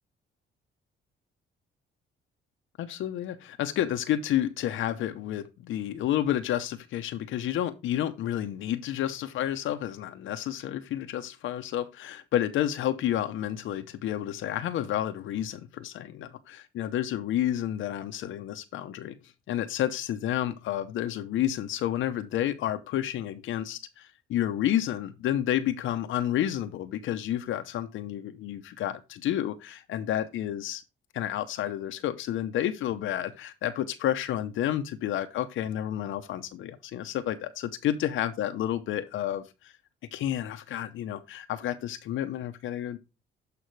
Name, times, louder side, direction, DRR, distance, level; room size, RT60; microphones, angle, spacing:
voice 1, 2.8-19.2 19.5-30.8 31.1-39.7 40.1-43.0, left 11 dB, 80° left, 0.8 m, -30 dB
11.5 x 5.1 x 3.2 m
cardioid pair, 90°, 20 cm